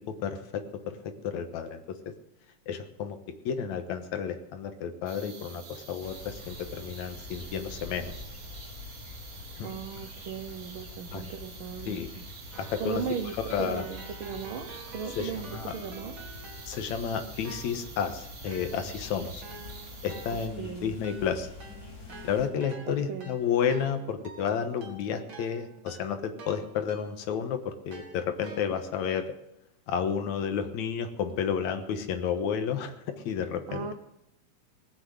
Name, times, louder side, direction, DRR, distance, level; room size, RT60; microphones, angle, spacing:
voice 1, 0.1-2.0 2.7-3.2 3.5-8.1 9.6-9.7 11.1-11.2 11.9-12.1 12.6-13.0 13.4-13.9 15.2-15.7 16.7-19.4 20.0-21.5 22.2-29.2 29.9-33.9, left 7 dB, 70° left, 8 dB, 2.4 m, -31 dB
sound 1, 5.1-20.5, right 5 dB, 60° right, 3.2 m, -48 dB
sound 2, 6.0-22.5, left 3 dB, 30° left, 3.7 m, -46 dB
voice 2, 9.6-12.2 12.8-16.2 20.6-21.0 22.9-23.4 33.7-33.9, right 7 dB, 85° right, 7 dB, 1.1 m, -37 dB
Keyboard (musical), 12.5-17.0 17.4-27.4 27.9-29.1, right 3 dB, 40° right, 3.0 m, -49 dB
19.5 x 7.9 x 7.7 m, 0.84 s
omnidirectional pair, 3.5 m